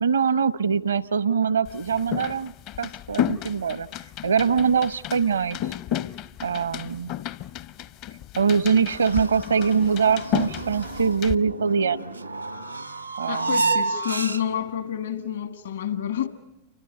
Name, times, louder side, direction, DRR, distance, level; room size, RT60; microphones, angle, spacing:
voice 1, 0.0-2.5 2.8-3.9 4.2-5.6 6.4-7.1 8.4-12.0 13.2-13.5, right 6 dB, 70° right, 0.8 m, -23 dB
sound 1, 1.6-11.4, left 11 dB, 45° left, 0.7 m, -32 dB
sound 2, 8.9-14.7, right 3 dB, 85° right, 1.1 m, -30 dB
voice 2, 13.3-16.3, left 9 dB, 65° left, 1.5 m, -28 dB
29.0 x 24.5 x 5.2 m
figure-of-eight pair, 90°, 0 cm